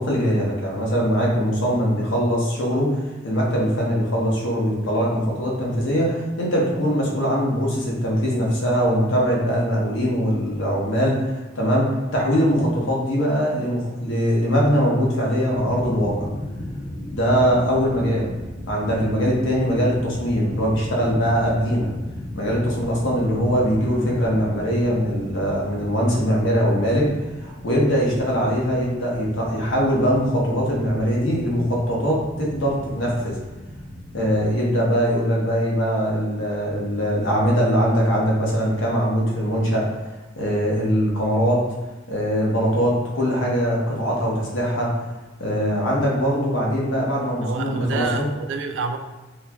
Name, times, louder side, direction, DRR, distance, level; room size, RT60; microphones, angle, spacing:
voice 1, 0.0-3.0 3.2-16.3 17.1-18.3 18.7-21.9 22.3-27.1 27.4-33.4 34.1-40.0 40.4-41.7 42.1-45.0 45.4-48.3, equal, 80° left, -3 dB, 0.8 m, -22 dB
sound 1, 15.5-34.5, left 1 dB, 15° left, 0.3 m, -37 dB
voice 2, 47.4-49.0, right 4 dB, 65° right, 6 dB, 0.3 m, -28 dB
4.2 x 2.2 x 2.2 m, 1.1 s
head